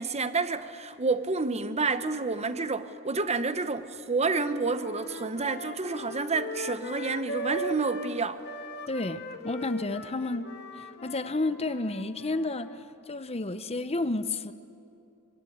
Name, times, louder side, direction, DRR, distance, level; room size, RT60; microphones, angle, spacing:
voice 1, 0.0-8.4, right 4 dB, 30° right, 1.1 m, -29 dB
sound 1, 4.3-8.1 8.4-12.8, equal, 55° left, 1.8 m, -39 dB
voice 2, 8.9-10.5 10.8-14.5, left 2 dB, 30° left, 1.0 m, -31 dB
25.0 x 25.0 x 9.6 m
head